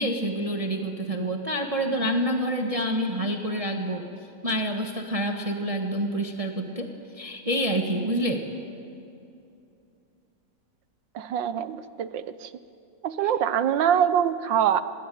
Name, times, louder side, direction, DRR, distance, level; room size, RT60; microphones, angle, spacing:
voice 1, 0.0-4.1 4.4-6.9 7.1-8.5 13.2-13.3, equal, 20° right, 3 dB, 1.4 m, -27 dB
voice 2, 11.1-12.5 13.0-14.8, right 9 dB, 75° right, 13 dB, 1.6 m, -24 dB
25.5 x 21.0 x 9.4 m, 2.6 s
omnidirectional pair, 2.0 m